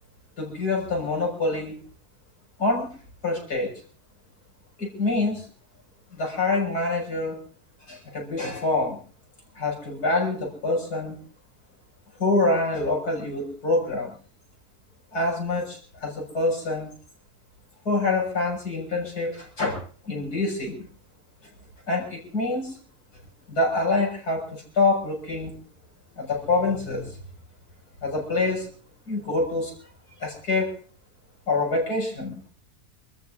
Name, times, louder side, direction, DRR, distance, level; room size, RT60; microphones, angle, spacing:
voice 1, 0.4-1.8 2.6-2.9 3.2-3.7 4.8-5.5 6.1-7.4 7.9-9.0 9.5-11.2 12.2-14.1 15.1-16.9 17.9-19.8 20.0-20.9 21.9-22.8 23.5-25.5 26.2-27.2 28.0-28.7 29.1-29.7 30.2-30.7 31.5-32.4, left 2 dB, 85° left, -1 dB, 7.1 m, -26 dB
26.5 x 13.5 x 3.8 m, 0.42 s
omnidirectional pair, 1.6 m